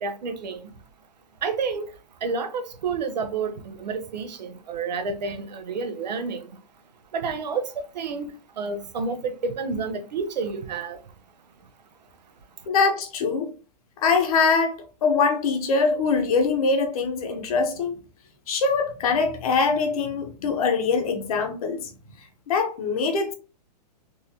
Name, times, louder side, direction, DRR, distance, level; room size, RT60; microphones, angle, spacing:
voice 1, 0.0-0.7 1.4-1.9 2.2-6.6 7.1-11.0, right 4 dB, 80° right, 0.8 m, -30 dB
voice 2, 12.7-13.5 14.0-14.8 15.0-18.0 18.5-21.9 22.5-23.3, left 4 dB, 60° left, 1.0 m, -23 dB
3.9 x 2.6 x 2.8 m
hypercardioid pair, 145°, 21 cm